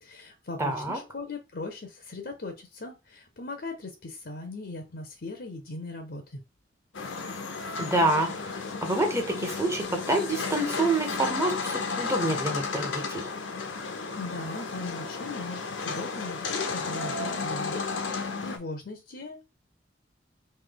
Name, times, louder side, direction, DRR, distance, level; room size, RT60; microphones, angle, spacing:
voice 1, 0.0-6.4 14.2-19.4, left 3 dB, 55° left, 5 dB, 0.7 m, -39 dB
voice 2, 0.6-1.0 7.8-8.3 8.8-13.2, right 2 dB, 15° right, 4 dB, 0.9 m, -27 dB
sound 1, 6.9-18.6, left 4 dB, 90° left, 0.8 m, -33 dB
3.2 x 2.7 x 3.9 m, 0.28 s
head